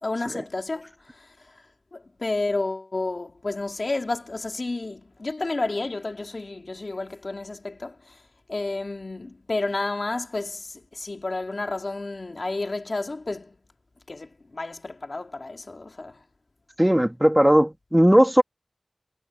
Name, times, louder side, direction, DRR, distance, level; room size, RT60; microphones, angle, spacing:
voice 1, 0.0-1.6 1.9-8.2 8.5-13.6 14.1-16.2, left 2 dB, 80° left, 3.0 m, -31 dB
voice 2, 16.8-18.4, equal, 10° right, 2.2 m, -18 dB
wide cardioid pair, 40°, 0 cm